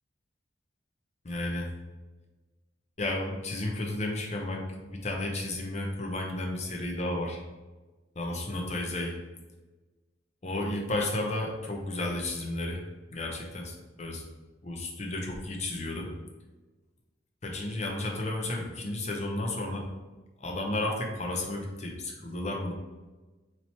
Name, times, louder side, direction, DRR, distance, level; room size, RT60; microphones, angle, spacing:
voice 1, 1.3-1.7 3.0-7.4 8.2-9.2 10.4-12.8 13.1-14.2 14.6-16.1 17.4-19.8 20.4-22.7, left 1 dB, 40° left, 0 dB, 0.6 m, -32 dB
3.0 x 2.8 x 4.2 m, 1.2 s
head